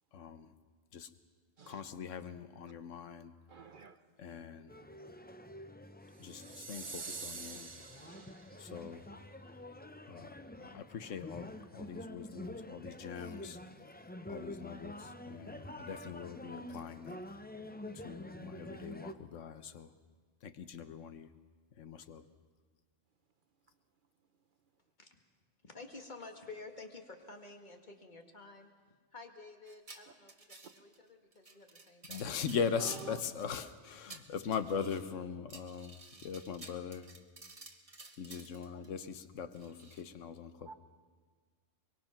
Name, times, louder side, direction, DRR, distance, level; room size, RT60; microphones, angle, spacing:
voice 1, 0.1-0.5 0.9-1.1 1.7-3.3 4.2-4.7 6.2-7.8 8.6-9.1 10.1-13.6 14.3-17.2 17.9-19.9 20.4-21.3 21.8-22.2 32.1-37.1 38.2-40.7, left 6 dB, 80° left, 11 dB, 1.3 m, -41 dB
voice 2, 3.5-4.0 8.0-8.3 32.8-33.0 40.7-40.8, right 5 dB, 45° right, 10 dB, 1.0 m, -50 dB
sound 1, 4.7-19.1, left 1 dB, 15° left, 0.4 m, -48 dB
sound 2, 6.2-8.7, right 4 dB, 70° right, 1.8 m, -46 dB
voice 3, 25.6-28.7 29.1-32.4 38.7-38.8, left 3 dB, 35° left, 3 dB, 2.0 m, -51 dB
sound 3, 29.7-31.0 31.3-33.5 33.9-35.1 35.5-38.9 39.5-40.0, right 2 dB, 30° right, 1.4 m, -53 dB
23.5 x 23.0 x 5.9 m, 1.5 s
omnidirectional pair, 1.3 m